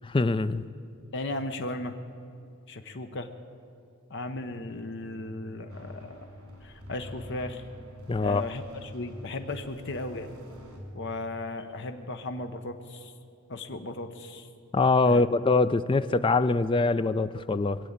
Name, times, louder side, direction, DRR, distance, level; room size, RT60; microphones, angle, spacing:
voice 1, 0.1-0.6 8.1-8.4 14.7-17.8, left 3 dB, 25° left, 14 dB, 0.3 m, -23 dB
voice 2, 1.1-1.9 2.7-3.3 4.1-6.3 6.6-7.6 8.2-10.3 10.9-13.1 13.5-14.5 15.1-15.2, left 2 dB, 55° left, 7 dB, 0.8 m, -36 dB
sound 1, 5.7-10.8, left 1 dB, 70° right, 3.5 m, -46 dB
20.5 x 7.7 x 8.6 m, 2.6 s
head